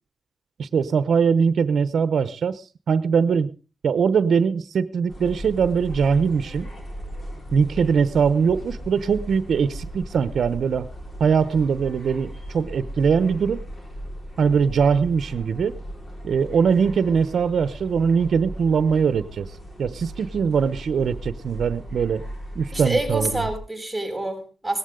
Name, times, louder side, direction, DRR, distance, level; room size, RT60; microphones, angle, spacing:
voice 1, 0.6-3.5 3.8-6.7 7.5-10.9 11.2-13.6 14.4-15.8 16.2-19.5 19.8-22.2 22.6-23.5, right 6 dB, 75° right, 0.8 m, -21 dB
sound 1, 5.1-23.6, equal, 40° left, 4.6 m, -37 dB
voice 2, 22.7-24.8, right 1 dB, 5° right, 7.4 m, -27 dB
18.0 x 14.5 x 3.8 m
cardioid pair, 90°, 0 cm